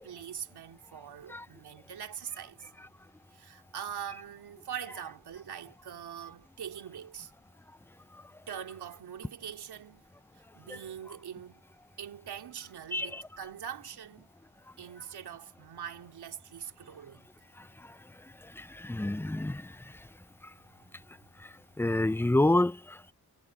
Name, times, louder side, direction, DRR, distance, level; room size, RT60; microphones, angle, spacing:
voice 1, 0.0-2.7 3.3-7.3 8.5-10.0 10.5-11.6 12.0-14.3 14.8-17.3 20.6-20.7, right 9 dB, 90° right, 2.9 m, -43 dB
voice 2, 12.9-13.2 18.6-19.7 21.8-23.1, left 2 dB, 5° left, 0.6 m, -28 dB
wide cardioid pair, 105°, 38 cm